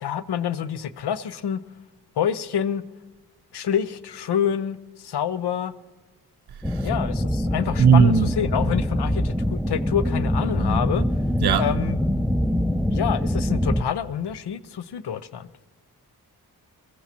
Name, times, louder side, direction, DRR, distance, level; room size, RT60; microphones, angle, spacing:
voice 1, 0.0-1.6 2.2-2.8 3.5-5.7 6.8-11.0 11.6-12.0 12.9-15.7, left 8 dB, 80° left, 0.8 m, -27 dB
sound 1, 6.6-13.8, left 1 dB, ahead, 0.5 m, -24 dB
voice 2, 7.8-8.3 11.4-11.7, right 7 dB, 70° right, 0.7 m, -17 dB
22.0 x 14.5 x 2.9 m
cardioid pair, 45°, 39 cm